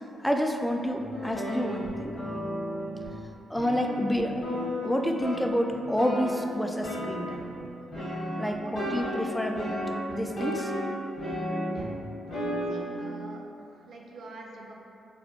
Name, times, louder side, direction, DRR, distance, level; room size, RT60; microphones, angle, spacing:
voice 1, 0.2-2.2 3.5-4.4 4.8-7.5 8.4-9.8 10.1-10.7, equal, 5° left, 3 dB, 0.3 m, -29 dB
sound 1, 1.0-3.2 3.6-6.4 6.8-7.6 7.9-11.9 12.3-12.8, equal, 70° left, 1.3 m, -33 dB
voice 2, 11.2-11.9 12.7-13.4 13.7-14.7, right 3 dB, 65° right, 0 dB, 0.4 m, -45 dB
3.1 x 2.3 x 2.9 m, 2.8 s
hypercardioid pair, 40°, 0 cm